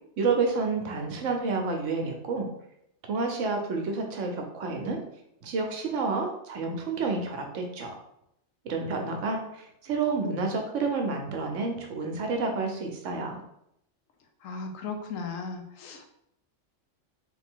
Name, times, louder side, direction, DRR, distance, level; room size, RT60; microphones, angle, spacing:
voice 1, 0.2-2.5 3.1-5.0 5.4-8.0 8.6-13.4, right 4 dB, 75° right, 3 dB, 1.0 m, -29 dB
voice 2, 14.4-16.1, left 4 dB, 85° left, 4 dB, 1.1 m, -36 dB
3.4 x 3.2 x 3.6 m, 0.77 s
omnidirectional pair, 1.3 m